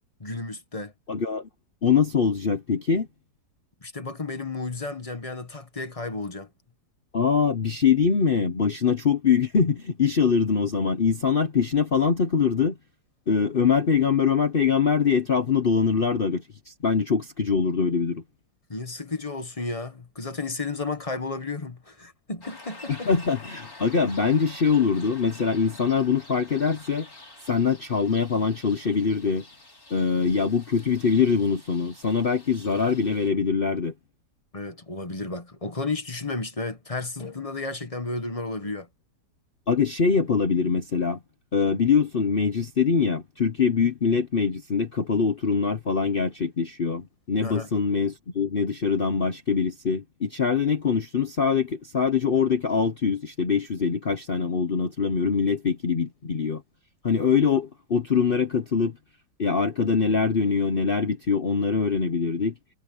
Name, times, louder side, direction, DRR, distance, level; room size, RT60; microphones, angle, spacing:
voice 1, 0.2-0.9 3.8-6.5 18.7-23.1 34.5-38.9 47.4-47.7, left 3 dB, 20° left, 1.3 m, -33 dB
voice 2, 1.1-1.5 1.8-3.1 7.1-12.8 13.3-18.2 22.9-27.1 27.5-29.4 29.9-33.9 39.7-41.2 41.5-56.6 57.0-59.0 59.4-62.5, left 6 dB, 40° left, 0.9 m, -23 dB
sound 1, 22.4-33.3, left 2 dB, 55° left, 6.5 m, -48 dB
omnidirectional pair, 1.8 m